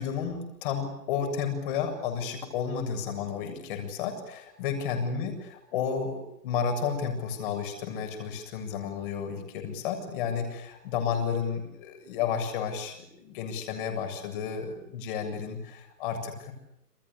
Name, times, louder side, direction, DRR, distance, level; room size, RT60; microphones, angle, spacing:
voice 1, 0.0-16.5, left 7 dB, 30° left, 6 dB, 7.4 m, -32 dB
29.0 x 27.5 x 6.9 m, 0.83 s
figure-of-eight pair, 140°, 48 cm